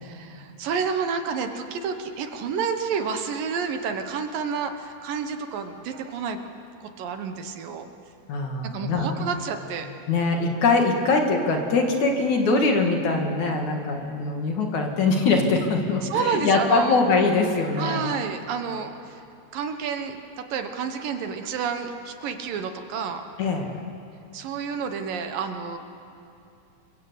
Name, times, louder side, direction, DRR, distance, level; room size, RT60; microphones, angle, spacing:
voice 1, 0.0-6.5 6.8-7.9 8.6-9.9 16.1-17.0 17.7-19.2 19.5-23.2 24.3-25.8, right 6 dB, 70° right, 7 dB, 2.7 m, -30 dB
voice 2, 8.3-9.2 10.1-18.2 23.4-23.7, left 3 dB, 55° left, 2 dB, 3.1 m, -22 dB
27.0 x 23.0 x 8.1 m, 2.7 s
omnidirectional pair, 4.3 m